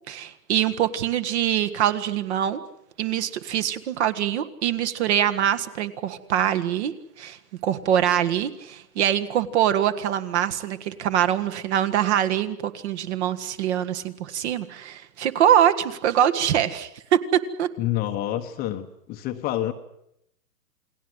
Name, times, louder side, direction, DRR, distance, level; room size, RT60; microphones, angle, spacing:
voice 1, 0.1-2.6 3.0-7.4 7.6-17.7, right 10 dB, 40° right, 10 dB, 1.8 m, -24 dB
voice 2, 17.8-19.7, left 13 dB, 20° left, 6 dB, 1.1 m, -28 dB
29.0 x 20.0 x 8.0 m, 0.78 s
hypercardioid pair, 140°, 49 cm